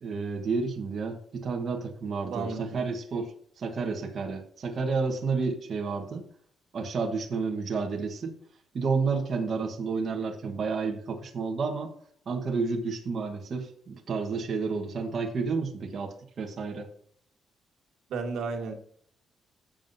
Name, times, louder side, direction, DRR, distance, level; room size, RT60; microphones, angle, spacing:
voice 1, 0.0-3.3 3.6-6.2 6.7-8.4 8.7-11.9 12.3-16.9, right 4 dB, 40° right, 2 dB, 1.3 m, -30 dB
voice 2, 2.3-2.8 18.1-18.7, right 4 dB, 80° right, 3 dB, 1.6 m, -33 dB
16.5 x 7.4 x 2.7 m, 0.63 s
cardioid pair, 165°, 0 cm